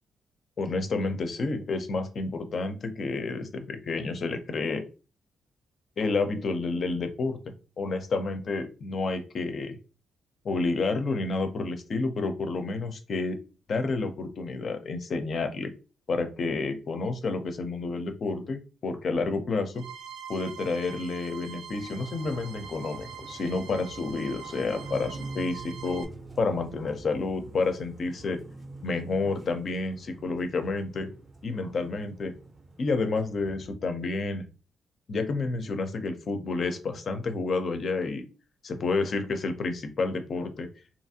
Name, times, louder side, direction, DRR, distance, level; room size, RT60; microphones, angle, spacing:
voice 1, 0.6-4.8 6.0-7.4 7.8-9.8 10.4-13.4 13.7-15.7 16.1-19.8 20.3-26.1 26.4-28.4 28.8-31.1 31.4-32.3 32.8-34.4 35.1-38.2 38.6-40.7, left 3 dB, 40° left, 7 dB, 0.4 m, -30 dB
sound 1, 19.7-26.0, right 7 dB, 85° right, 0.4 m, -44 dB
sound 2, 21.7-33.7, right 3 dB, 20° right, 0.5 m, -45 dB
2.8 x 2.4 x 2.7 m, 0.34 s
cardioid pair, 155°, 0 cm